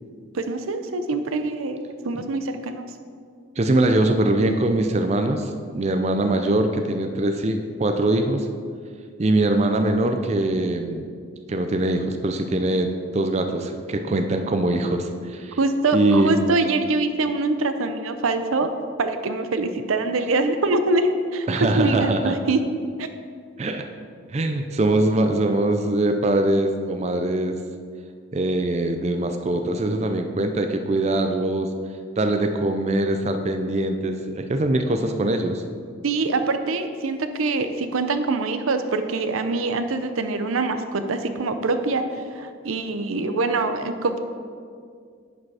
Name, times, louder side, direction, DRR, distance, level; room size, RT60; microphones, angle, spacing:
voice 1, 0.3-2.8 15.6-18.7 19.0-22.6 23.0-23.1 36.0-42.1 42.3-44.2, right 3 dB, 85° right, 8 dB, 0.6 m, -24 dB
voice 2, 3.6-8.5 9.2-11.1 11.5-15.6 15.9-16.3 21.5-22.4 23.6-23.8 24.3-27.6 28.3-31.7 32.2-35.6, right 1 dB, 30° right, 6 dB, 0.4 m, -22 dB
10.0 x 5.1 x 4.8 m, 2.2 s
head